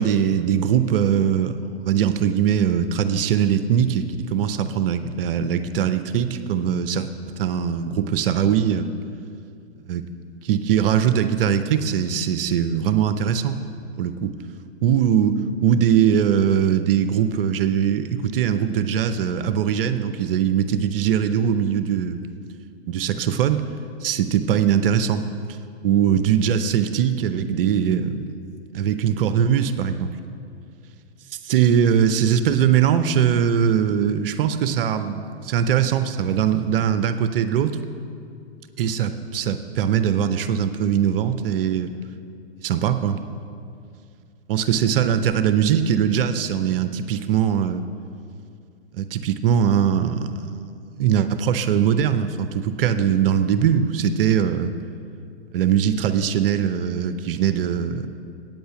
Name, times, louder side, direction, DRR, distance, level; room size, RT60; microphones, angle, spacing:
voice 1, 0.0-7.1 7.4-8.9 9.8-10.0 10.4-13.6 14.0-14.3 14.8-22.2 22.9-23.6 24.0-25.2 25.8-28.4 28.7-30.1 31.4-37.8 38.8-41.9 42.6-43.2 44.5-47.8 48.9-54.7 55.5-58.1, right 8 dB, 55° right, 10 dB, 0.7 m, -21 dB
9.0 x 7.9 x 7.6 m, 2.4 s
figure-of-eight pair, 110°, 34 cm